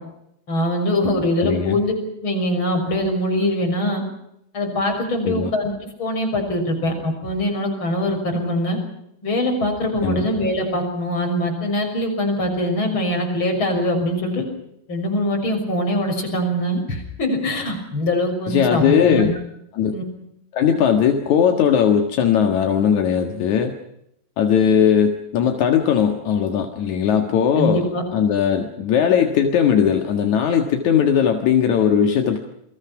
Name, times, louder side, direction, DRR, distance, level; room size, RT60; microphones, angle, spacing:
voice 1, 0.5-1.9 2.2-4.0 4.5-5.7 6.0-8.8 9.2-14.4 14.9-19.3 19.9-20.0 27.6-28.0, left 1 dB, 25° left, 3 dB, 6.6 m, -22 dB
voice 2, 1.4-1.8 5.2-5.5 10.0-10.3 18.5-19.3 19.7-20.0 20.5-23.7 24.4-32.4, left 8 dB, 55° left, 5 dB, 2.3 m, -18 dB
29.0 x 22.0 x 6.0 m, 0.78 s
omnidirectional pair, 5.3 m